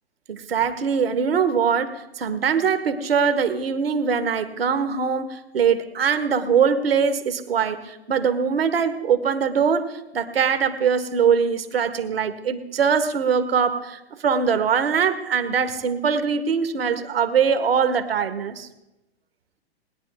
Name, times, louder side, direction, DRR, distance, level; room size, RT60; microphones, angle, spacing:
voice 1, 0.3-18.7, right 6 dB, 70° right, 9 dB, 1.6 m, -22 dB
20.5 x 10.5 x 3.6 m, 0.95 s
figure-of-eight pair, 115°, 31 cm